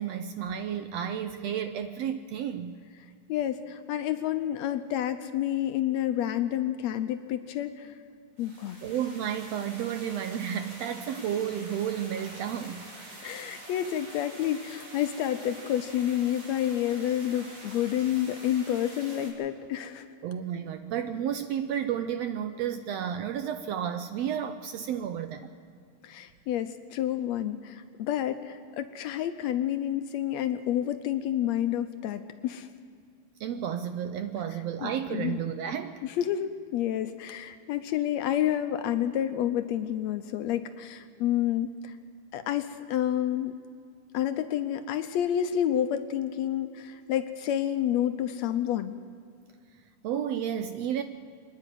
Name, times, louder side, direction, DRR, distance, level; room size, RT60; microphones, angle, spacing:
voice 1, 0.0-2.8 8.8-12.9 20.2-25.5 33.4-36.0 50.0-51.0, right 9 dB, 75° right, 9 dB, 1.6 m, -32 dB
voice 2, 3.3-8.0 8.4-8.8 13.2-20.1 26.0-32.7 34.8-35.4 36.0-41.9 42.3-43.6 44.1-49.0, left 11 dB, 75° left, 9 dB, 1.7 m, -29 dB
sound 1, 8.4-19.3, right 1 dB, 45° right, 4.1 m, -46 dB
27.0 x 10.5 x 9.1 m, 2.3 s
omnidirectional pair, 3.5 m